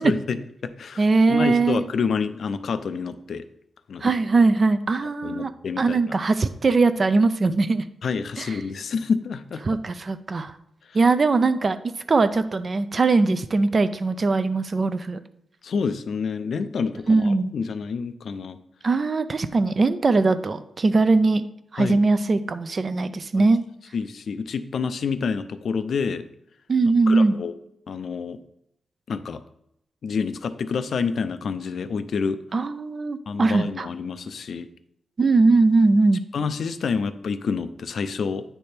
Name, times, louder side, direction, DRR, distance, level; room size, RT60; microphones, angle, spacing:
voice 1, 0.0-3.4 3.9-4.1 5.2-6.2 8.0-9.8 15.6-18.6 21.8-22.0 23.3-23.5 23.9-26.2 27.1-27.5 27.9-28.4 29.1-29.4 30.0-32.4 33.3-34.7 36.3-38.4, left 5 dB, 65° left, 11 dB, 0.4 m, -28 dB
voice 2, 1.0-1.8 4.0-5.5 5.8-7.8 8.4-8.6 9.6-10.5 10.9-15.2 17.1-17.5 18.8-21.5 21.7-23.6 26.7-27.3 32.5-33.9 35.2-36.2, right 3 dB, 40° right, 12 dB, 0.4 m, -20 dB
9.3 x 3.3 x 4.3 m, 0.76 s
wide cardioid pair, 110°, 0 cm